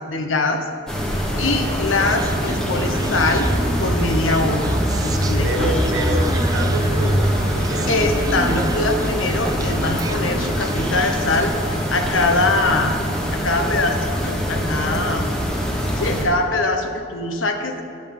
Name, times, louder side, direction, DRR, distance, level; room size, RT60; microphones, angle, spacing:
voice 1, 0.1-0.6 1.1-3.5 3.8-4.7 5.0-5.7 7.9-12.9 13.3-15.2 16.0-17.8, left 2 dB, 75° left, 5 dB, 1.1 m, -22 dB
sound 1, 0.9-16.3, equal, 5° left, 1.2 m, -23 dB
voice 2, 1.7-2.1 5.4-8.0, right 1 dB, 65° right, 2 dB, 1.4 m, -28 dB
Human voice, 2.0-11.5, right 2 dB, 20° right, 0.3 m, -30 dB
10.0 x 8.5 x 5.5 m, 2.5 s
head